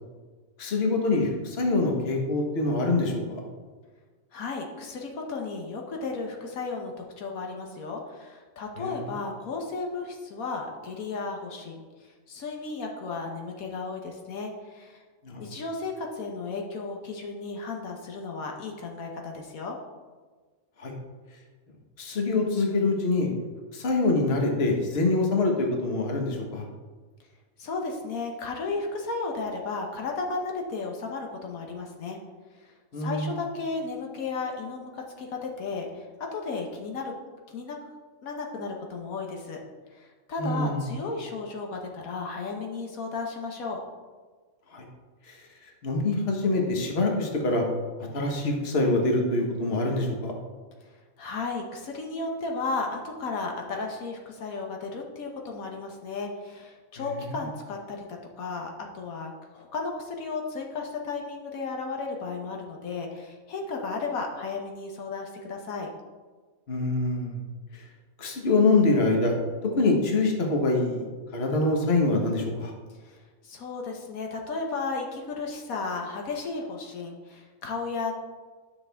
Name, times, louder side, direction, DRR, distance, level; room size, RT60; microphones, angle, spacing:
voice 1, 0.6-3.4 8.8-8.9 15.2-15.4 20.8-20.9 22.0-23.3 23.7-26.6 32.9-33.3 40.4-40.8 44.7-44.8 45.3-45.4 45.8-47.6 48.1-50.3 66.7-67.4 68.2-69.3 69.8-71.1 71.3-72.7, left 2 dB, 45° left, 1 dB, 1.4 m, -25 dB
voice 2, 4.3-15.0 15.4-19.8 27.6-32.2 32.6-37.1 37.5-37.8 38.2-39.6 39.9-43.8 51.2-65.9 73.0-73.2 73.4-78.1, left 4 dB, 80° left, 1 dB, 1.4 m, -34 dB
10.5 x 6.0 x 3.4 m, 1.4 s
omnidirectional pair, 1.5 m